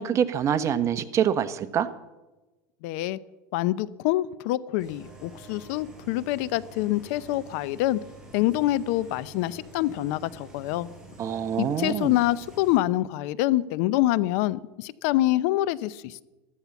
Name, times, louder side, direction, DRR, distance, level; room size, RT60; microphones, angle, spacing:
voice 1, 0.0-1.9 11.2-12.1, right 8 dB, 35° right, 11 dB, 1.1 m, -25 dB
voice 2, 2.8-3.2 3.5-8.0 8.3-10.9 11.6-16.2, left 15 dB, 70° left, 19 dB, 0.7 m, -26 dB
sound 1, 4.8-12.8, right 1 dB, 5° right, 5.1 m, -48 dB
14.0 x 13.5 x 7.1 m, 1.1 s
supercardioid pair, 125°, 9 cm